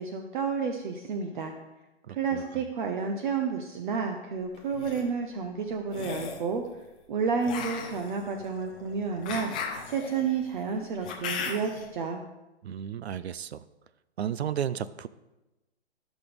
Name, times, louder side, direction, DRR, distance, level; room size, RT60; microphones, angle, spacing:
voice 1, 0.0-1.5 2.1-6.6 7.1-9.5 9.9-12.2, right 5 dB, 45° right, 5 dB, 1.0 m, -30 dB
voice 2, 2.1-2.6 12.6-13.6 14.2-15.1, right 9 dB, 70° right, 16 dB, 0.5 m, -33 dB
sound 1, 4.5-5.0 5.9-6.5 7.4-11.8, left 5 dB, 10° left, 0.3 m, -37 dB
16.0 x 6.2 x 3.5 m, 1.0 s
hypercardioid pair, 135°, 34 cm